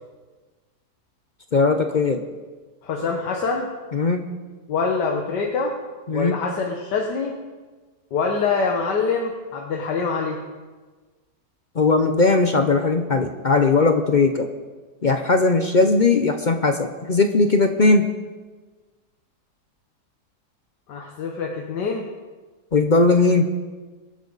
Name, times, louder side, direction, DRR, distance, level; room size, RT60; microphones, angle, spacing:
voice 1, 1.5-2.2 3.9-4.2 6.1-6.3 11.8-14.5 15.0-18.1 22.7-23.5, left 3 dB, 50° left, 6 dB, 0.5 m, -18 dB
voice 2, 2.8-3.7 4.7-5.7 6.1-7.3 8.1-10.4 20.9-22.0, left 4 dB, 90° left, 1 dB, 1.7 m, -25 dB
23.0 x 8.7 x 4.0 m, 1.4 s
omnidirectional pair, 1.8 m